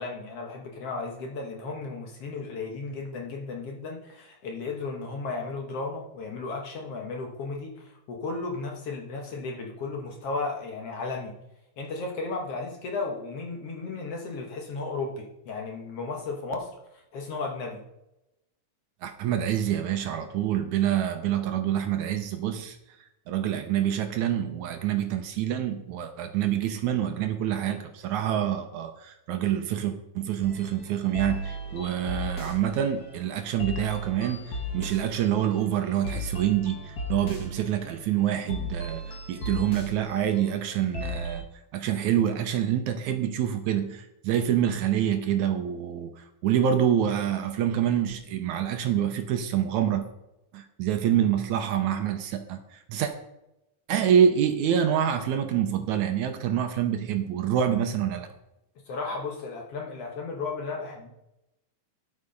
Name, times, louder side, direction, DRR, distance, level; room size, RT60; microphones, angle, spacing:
voice 1, 0.0-11.3 11.8-17.8 58.9-61.1, left 3 dB, 60° left, 1 dB, 1.9 m, -34 dB
voice 2, 19.0-22.8 23.3-41.4 41.7-50.0 50.5-53.1 53.9-58.3, right 9 dB, 75° right, 7 dB, 2.0 m, -26 dB
sound 1, 30.4-41.4, equal, 40° left, 1.4 m, -36 dB
9.8 x 8.1 x 5.2 m, 0.89 s
omnidirectional pair, 3.7 m